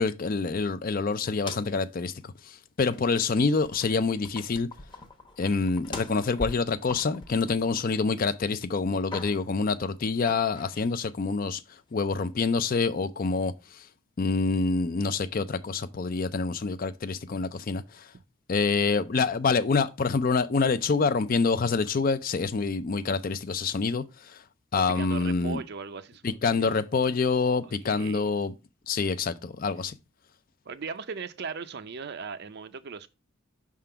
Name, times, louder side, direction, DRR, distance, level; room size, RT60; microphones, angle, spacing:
voice 1, 0.0-4.7 5.4-11.6 11.9-13.8 14.2-18.1 18.5-24.4 24.7-25.6 26.2-28.5 28.9-29.9, left 4 dB, 40° left, 0.4 m, -26 dB
sound 1, 1.2-1.9 2.2-2.3 2.9-3.3 3.6-8.2 8.6-9.6 10.3-10.9, left 2 dB, 20° left, 0.8 m, -42 dB
voice 2, 24.7-26.7 27.6-28.3 30.7-33.1, right 5 dB, 45° right, 0.5 m, -38 dB
5.9 x 3.7 x 5.6 m
head